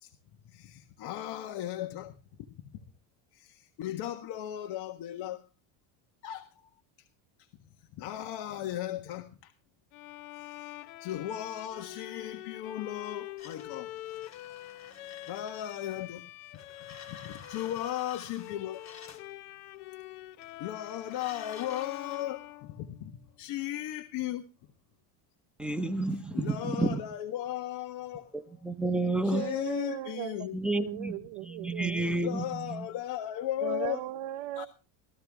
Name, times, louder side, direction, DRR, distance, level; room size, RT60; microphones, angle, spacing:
voice 1, 0.4-2.1 3.3-5.4 6.2-6.7 8.0-9.5 10.4-13.9 15.3-16.2 17.1-18.8 20.6-23.1 23.4-24.4 26.3-28.3 29.3-30.6 32.2-34.0 34.6-34.7, left 13 dB, 60° left, 1.6 m, -36 dB
Bowed string instrument, 9.9-23.4, left 15 dB, 90° left, 1.1 m, -46 dB
sound 1, 13.4-16.0 16.5-19.3 20.4-22.2, left 7 dB, 35° left, 2.5 m, -50 dB
voice 2, 25.6-27.0 28.3-29.5 30.5-32.9, right 2 dB, ahead, 1.2 m, -31 dB
voice 3, 29.3-30.3 30.8-32.4 33.6-34.7, right 14 dB, 65° right, 0.9 m, -37 dB
15.5 x 13.5 x 3.6 m
supercardioid pair, 125°, 46 cm